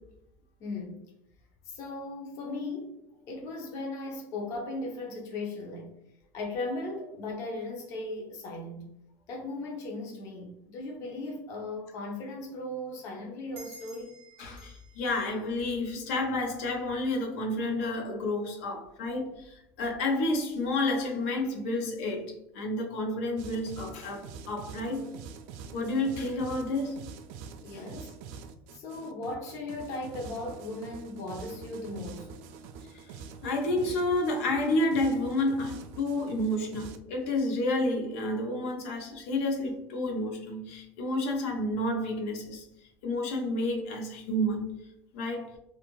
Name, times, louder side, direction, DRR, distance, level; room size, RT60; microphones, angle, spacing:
voice 1, 0.6-1.0 1.7-2.9 3.3-5.9 6.3-8.8 9.3-14.1 27.6-28.2 28.7-32.3, left 2 dB, 40° left, 0.6 m, -37 dB
sound 1, 13.6-16.7, right 3 dB, 30° right, 0.7 m, -53 dB
voice 2, 14.4-25.1 25.7-27.0 27.7-27.8 32.9-33.1 33.4-42.6 43.0-44.7 45.1-45.6, left 1 dB, 80° left, 0.7 m, -30 dB
sound 2, 23.4-37.0, right 6 dB, 65° right, 0.3 m, -45 dB
2.6 x 2.4 x 2.9 m
cardioid pair, 165°, 8 cm